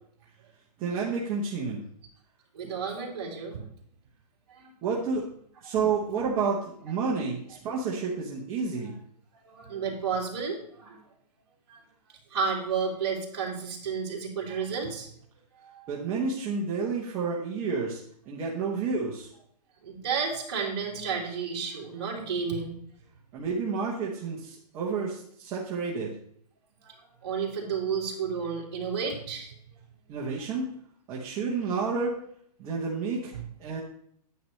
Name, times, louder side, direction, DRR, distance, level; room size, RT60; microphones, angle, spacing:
voice 1, 0.8-1.8 4.8-5.2 5.6-9.0 15.9-18.0 18.3-19.3 23.3-26.1 30.1-30.7 31.1-32.1 32.6-33.3 33.6-33.8, right 5 dB, 15° right, -5 dB, 0.8 m, -30 dB
voice 2, 2.5-3.6 4.5-4.7 9.4-11.0 11.7-11.8 12.3-15.1 15.6-15.9 19.8-22.8 26.8-29.5 33.3-33.4, right 6 dB, 40° right, -2 dB, 2.9 m, -32 dB
9.6 x 9.4 x 3.2 m, 0.65 s
hypercardioid pair, 170°, 21 cm